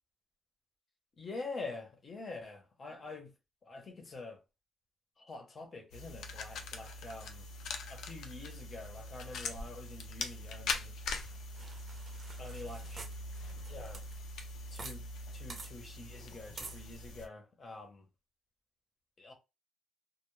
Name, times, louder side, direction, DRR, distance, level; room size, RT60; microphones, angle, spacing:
voice 1, 1.2-3.3 3.6-4.4 5.2-7.5 7.9-11.0 12.4-13.0 13.7-14.0 14.7-18.1 19.2-19.3, left 3 dB, 35° left, 0.8 m, -46 dB
sound 1, 5.9-17.3, left 3 dB, 75° left, 0.5 m, -42 dB
sound 2, 11.0-15.0 15.2-15.3 15.5-15.7 16.6-16.8, right 3 dB, 30° right, 0.7 m, -49 dB
2.2 x 2.1 x 3.1 m
cardioid pair, 135°, 0 cm